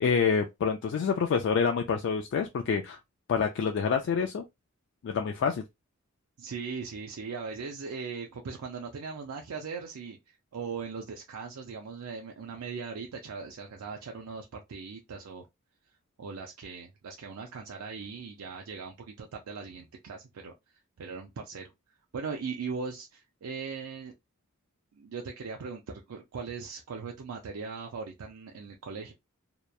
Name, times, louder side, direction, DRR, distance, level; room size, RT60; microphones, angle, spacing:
voice 1, 0.0-3.0 3.3-4.4 5.0-5.6, left 6 dB, 60° left, 0.3 m, -27 dB
voice 2, 6.4-10.2 10.5-15.5 16.2-20.5 21.0-21.7 22.1-24.1 24.9-29.1, right 5 dB, 90° right, 0.5 m, -39 dB
2.9 x 2.1 x 2.3 m
head